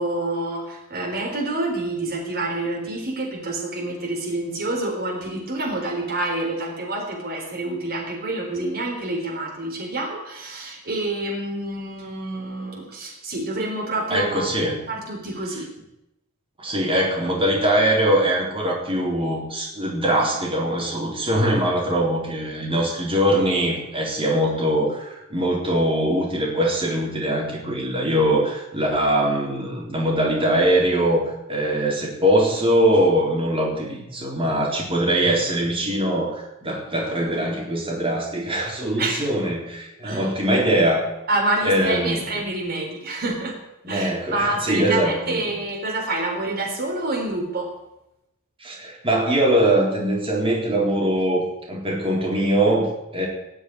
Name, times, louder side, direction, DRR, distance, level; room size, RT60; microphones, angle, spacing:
voice 1, 0.0-14.5 14.9-15.7 39.0-39.2 40.0-40.3 41.3-43.6 43.9-47.7, right 2 dB, 45° right, -1 dB, 4.0 m, -27 dB
voice 2, 14.1-14.8 16.6-31.2 31.5-41.0 41.6-42.2 43.8-45.4 48.6-53.3, right 1 dB, 25° right, -3 dB, 4.2 m, -22 dB
20.0 x 7.2 x 9.8 m, 0.91 s
head